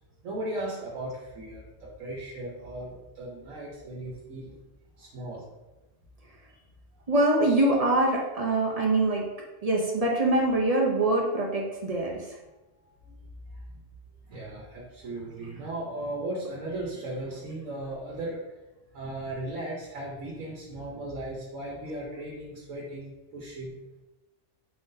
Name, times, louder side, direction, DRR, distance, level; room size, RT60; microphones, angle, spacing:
voice 1, 0.2-4.5 5.0-5.4 6.5-6.6 7.4-7.6 13.1-13.2 14.3-18.4 18.9-23.8, right 1 dB, 75° right, -4 dB, 1.2 m, -37 dB
voice 2, 7.1-9.2 9.6-12.4, right 2 dB, 45° right, -2 dB, 0.5 m, -24 dB
4.6 x 3.7 x 2.6 m, 1.1 s
omnidirectional pair, 1.4 m